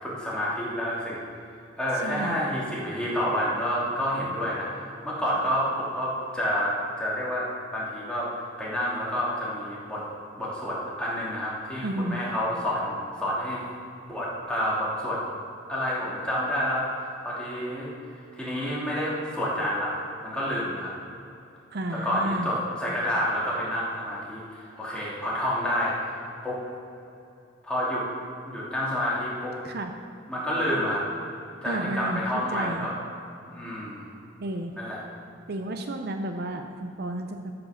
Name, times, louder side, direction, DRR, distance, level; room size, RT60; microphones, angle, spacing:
voice 1, 0.0-1.2 1.8-10.0 10.4-13.6 14.0-15.2 15.7-17.9 18.3-19.9 20.2-20.9 21.9-26.6 27.6-28.0 28.5-29.5 30.3-31.0 31.6-32.9 33.5-34.1 34.7-35.0, equal, 5° left, -7 dB, 2.7 m, -29 dB
voice 2, 2.0-2.4 11.8-12.2 21.7-22.5 29.6-29.9 31.6-32.9 34.4-34.7 35.5-37.5, right 1 dB, 55° right, 5 dB, 0.6 m, -32 dB
13.0 x 6.1 x 6.4 m, 2.7 s
head